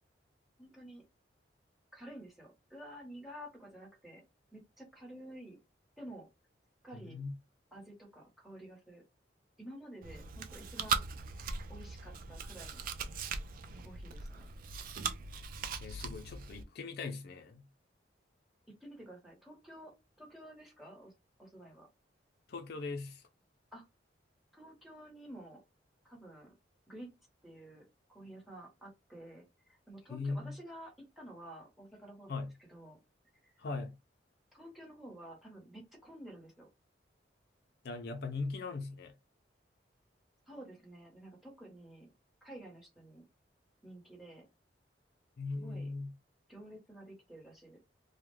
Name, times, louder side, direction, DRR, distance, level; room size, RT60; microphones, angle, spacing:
voice 1, 0.6-1.0 1.9-4.2 4.5-5.6 6.0-6.3 6.8-7.2 7.7-9.0 9.6-11.0 11.7-12.9 13.8-14.5 18.8-19.9 20.2-21.1 21.4-21.9 23.7-23.8 24.5-25.6 26.0-26.5 26.9-27.1 27.4-33.0 33.4-33.6 34.5-36.7 40.5-42.1 42.4-43.3 43.8-44.5 45.5-45.9 46.5-47.8, right 1 dB, ahead, 0.9 m, -51 dB
voice 2, 6.9-7.3 15.8-17.7 22.5-23.2 30.1-30.5 32.3-32.5 33.6-34.0 37.8-39.1 45.4-46.1, left 3 dB, 60° left, 0.4 m, -39 dB
Chewing mastication, 10.0-16.6, right 5 dB, 50° right, 0.3 m, -39 dB
2.4 x 2.1 x 3.1 m
head